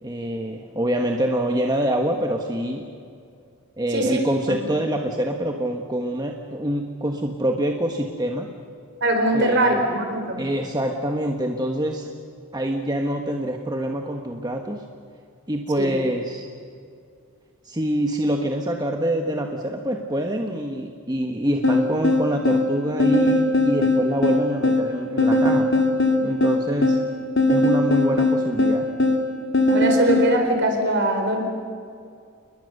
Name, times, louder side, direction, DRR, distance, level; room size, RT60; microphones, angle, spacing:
voice 1, 0.0-2.9 3.8-8.5 9.3-9.8 10.4-12.1 12.5-14.8 15.5-16.5 17.6-25.8 26.2-27.0 27.5-28.9, right 1 dB, 20° right, 2 dB, 1.3 m, -25 dB
voice 2, 9.0-10.4 15.8-15.9 29.7-31.4, right 1 dB, 55° right, 4 dB, 4.4 m, -21 dB
sound 1, 21.6-30.3, left 2 dB, 55° left, 2.5 m, -20 dB
29.5 x 21.0 x 6.7 m, 2.3 s
head